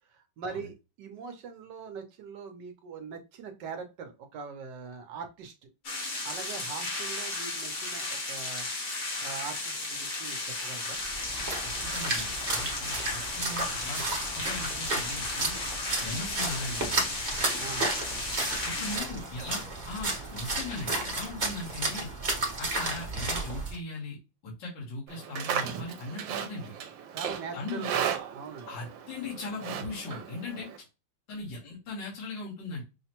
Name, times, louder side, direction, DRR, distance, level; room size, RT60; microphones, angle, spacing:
voice 1, 0.1-5.7 6.2-8.7 9.2-11.0 17.6-17.9 18.7-19.1 27.1-28.7, right 5 dB, 70° right, 6 dB, 1.3 m, -42 dB
sound 1, 5.8-19.0, left 2 dB, 50° left, 1.4 m, -34 dB
Splash splatter, 11.0-23.8, right 2 dB, 35° right, 0.8 m, -33 dB
voice 2, 11.6-14.0 14.4-15.6 16.0-17.1 18.6-22.1 22.6-24.2 24.4-26.7 27.5-27.9 28.7-30.9 31.3-32.8, left 2 dB, 75° left, -4 dB, 1.9 m, -39 dB
Livestock farm animals working animals, 25.1-30.8, right 8 dB, 90° right, 1.4 m, -35 dB
5.6 x 2.1 x 2.8 m, 0.27 s
omnidirectional pair, 2.0 m